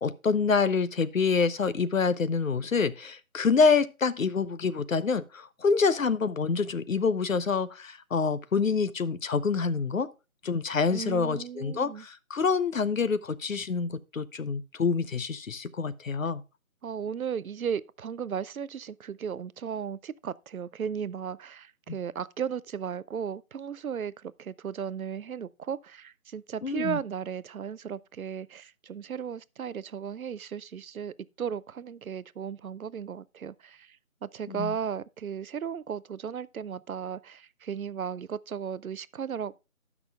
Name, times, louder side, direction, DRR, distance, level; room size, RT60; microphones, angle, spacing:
voice 1, 0.0-10.1 10.4-16.4 21.9-22.0 26.6-27.0 34.5-34.7, left 5 dB, 65° left, 0.7 m, -27 dB
voice 2, 10.9-12.0 16.8-34.0 34.2-39.6, right 7 dB, 75° right, 0.6 m, -35 dB
17.5 x 6.1 x 2.3 m
figure-of-eight pair, 165°, 42 cm